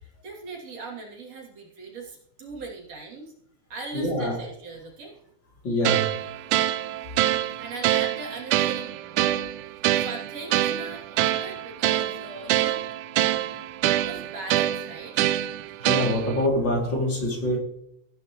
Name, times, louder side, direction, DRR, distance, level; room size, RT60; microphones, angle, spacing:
voice 1, 0.0-3.3 3.7-5.2 7.6-9.3 10.0-12.8 13.9-15.3, right 3 dB, 55° right, -2 dB, 4.0 m, -40 dB
voice 2, 3.9-4.4 5.6-6.0 15.8-17.6, left 1 dB, 35° left, 0 dB, 3.3 m, -25 dB
sound 1, 5.8-16.5, right 13 dB, 85° right, 2.1 m, -25 dB
19.0 x 10.5 x 3.1 m, 0.72 s
omnidirectional pair, 3.5 m